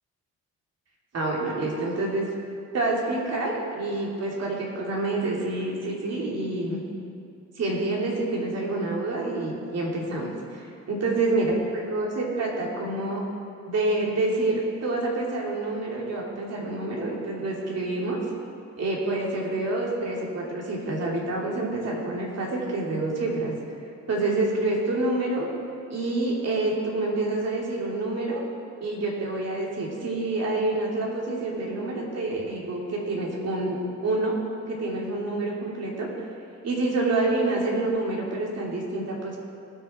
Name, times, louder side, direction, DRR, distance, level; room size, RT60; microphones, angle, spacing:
voice 1, 1.1-2.3 2.7-6.8 7.6-13.2 13.7-18.2 18.8-23.5 24.1-25.5 25.9-28.4 28.8-33.8 34.0-34.3 34.7-36.1 36.6-39.4, right 2 dB, 55° right, -3 dB, 3.0 m, -27 dB
19.0 x 6.8 x 4.4 m, 2.5 s
cardioid pair, 90°, 30 cm